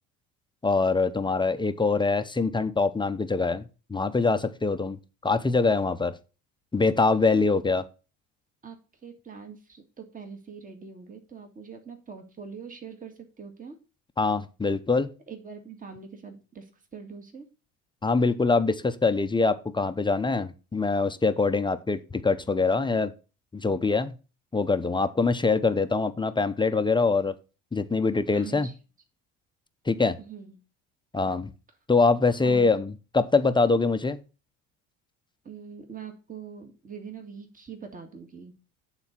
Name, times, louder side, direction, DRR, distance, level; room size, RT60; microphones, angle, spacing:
voice 1, 0.6-3.6 3.9-5.0 5.2-6.1 6.7-7.8 14.2-15.1 18.0-23.1 23.5-24.1 24.5-27.3 27.7-28.7 29.9-30.2 31.1-31.5 31.9-34.2, left 3 dB, 15° left, 9 dB, 0.7 m, -24 dB
voice 2, 8.6-13.8 15.3-17.5 28.3-28.7 30.2-30.6 32.4-32.8 35.4-38.5, right 6 dB, 25° right, 5 dB, 1.9 m, -43 dB
9.4 x 4.1 x 5.8 m, 0.32 s
supercardioid pair, 100°, 33 cm